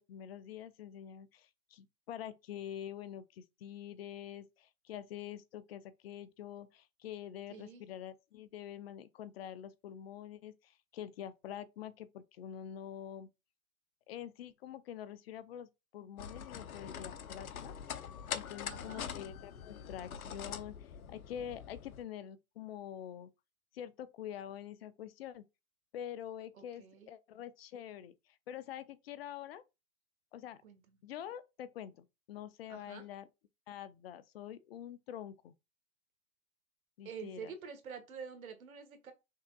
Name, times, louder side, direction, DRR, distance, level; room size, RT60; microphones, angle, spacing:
voice 1, 0.0-13.3 14.1-17.8 18.3-23.3 23.7-25.4 25.9-28.1 28.5-29.6 30.3-30.6 31.0-33.3 33.7-35.5 37.0-37.5, left 10 dB, 45° left, 0.5 m, -46 dB
voice 2, 7.5-7.8 18.7-19.1 26.5-27.1 30.6-31.0 32.7-33.0 37.0-39.1, right 6 dB, 75° right, 1.7 m, -48 dB
sound 1, 16.2-22.0, left 8 dB, 80° left, 0.8 m, -44 dB
5.6 x 3.5 x 2.3 m
hypercardioid pair, 130°, 42 cm